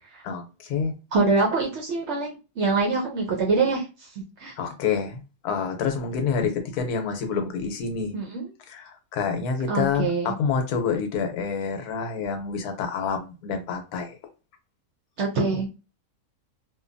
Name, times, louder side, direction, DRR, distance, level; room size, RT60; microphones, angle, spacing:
voice 1, 0.2-0.9 4.6-8.1 8.7-8.8 9.1-14.1, left 6 dB, 80° left, 1.2 m, -27 dB
voice 2, 1.1-4.5 8.1-8.5 9.7-10.3 15.2-15.7, right 4 dB, 60° right, 0.7 m, -25 dB
2.9 x 2.2 x 2.5 m
omnidirectional pair, 1.6 m